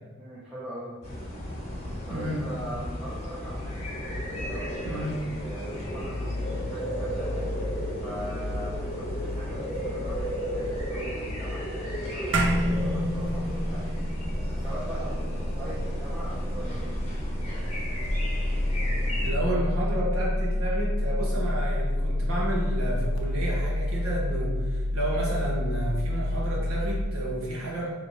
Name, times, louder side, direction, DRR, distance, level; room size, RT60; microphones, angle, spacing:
voice 1, 0.2-1.0 2.1-3.9 4.4-7.3 8.0-14.2 14.5-17.5, right 1 dB, 5° right, -10 dB, 0.6 m, -41 dB
sound 1, 1.0-19.3, equal, 30° left, 0.9 m, -33 dB
voice 2, 2.1-2.5 4.9-5.2 19.2-27.9, right 1 dB, 85° right, -4 dB, 1.1 m, -31 dB
sound 2, 12.3-17.0, right 1 dB, 60° right, 0.5 m, -29 dB
sound 3, 13.2-27.0, left 1 dB, 70° left, 0.5 m, -29 dB
3.2 x 3.1 x 4.0 m, 1.3 s
head